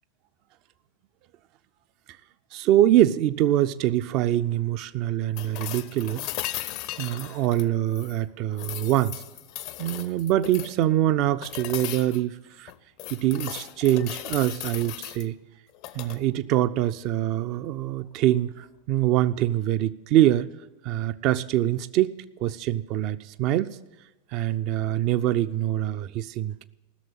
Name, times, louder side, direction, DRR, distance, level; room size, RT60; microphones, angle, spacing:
voice 1, 2.5-6.3 7.0-9.2 9.8-12.7 13.1-15.3 15.9-20.5 20.8-23.8 24.3-26.6, right 13 dB, 40° right, 14 dB, 0.4 m, -24 dB
sound 1, 5.4-8.2 8.6-10.8 11.4-12.2 12.7-15.2 15.7-16.2 18.2-18.3, left 14 dB, 45° left, 0.6 m, -37 dB
15.5 x 6.8 x 9.0 m, 1.1 s
figure-of-eight pair, 90°, 0 cm